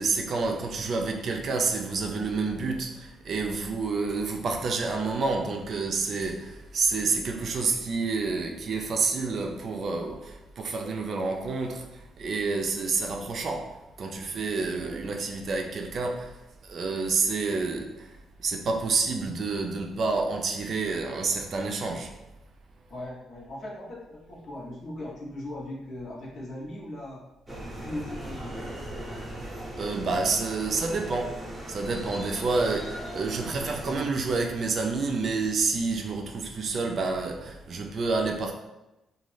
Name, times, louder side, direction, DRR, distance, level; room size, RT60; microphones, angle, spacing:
voice 1, 0.0-18.1 18.4-22.2 29.8-38.5, right 4 dB, 55° right, 0.4 m, -29 dB
voice 2, 22.9-27.2 27.8-28.5, left 1 dB, 55° left, 0.8 m, -38 dB
sound 1, 27.5-34.0, right 1 dB, 20° right, 0.8 m, -38 dB
2.5 x 2.3 x 3.2 m
cardioid pair, 90°, 0 cm